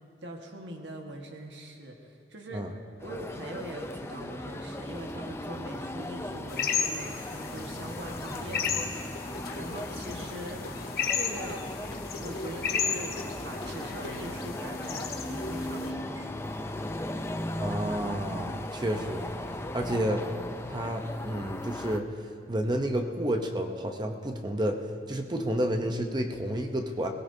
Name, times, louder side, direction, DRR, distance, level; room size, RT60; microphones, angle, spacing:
voice 1, 0.2-2.7 3.0-9.1 9.6-10.6 11.1-11.6 12.2-16.4, right 1 dB, 75° right, 2 dB, 1.5 m, -42 dB
sound 1, 3.0-22.0, left 1 dB, 15° left, 0.5 m, -37 dB
sound 2, 6.5-15.9, left 6 dB, 55° left, 1.1 m, -34 dB
sound 3, 8.9-14.7, left 1 dB, 80° left, 1.8 m, -46 dB
voice 2, 17.5-19.3 19.7-20.3 20.7-22.1 22.5-24.8 25.1-27.1, right 1 dB, 25° right, 4 dB, 0.7 m, -30 dB
22.0 x 17.0 x 2.7 m, 2.4 s
head